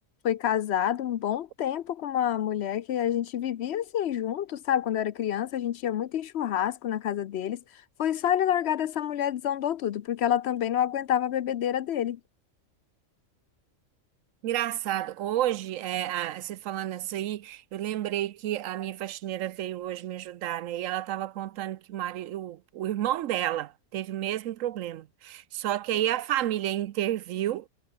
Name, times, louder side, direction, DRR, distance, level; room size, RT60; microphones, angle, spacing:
voice 1, 0.2-7.6 8.0-12.2, left 10 dB, 65° left, 0.8 m, -28 dB
voice 2, 14.4-27.6, right 13 dB, 90° right, 1.0 m, -31 dB
omnidirectional pair, 1.3 m